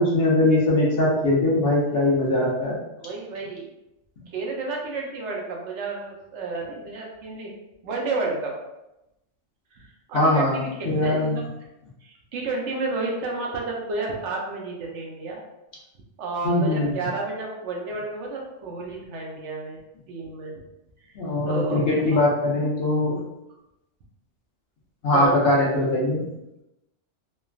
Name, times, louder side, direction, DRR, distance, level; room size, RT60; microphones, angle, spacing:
voice 1, 0.0-2.8 10.1-11.4 16.4-16.9 21.1-23.2 25.0-26.3, left 1 dB, 55° left, -4 dB, 0.8 m, -21 dB
voice 2, 3.0-3.7 4.3-7.5 7.8-8.5 9.7-11.4 12.0-15.4 16.2-19.8 20.1-20.5 21.5-21.8 22.1-22.2 25.1-25.4, right 3 dB, 70° right, -1 dB, 0.9 m, -31 dB
3.2 x 2.2 x 2.3 m, 0.92 s
omnidirectional pair, 1.3 m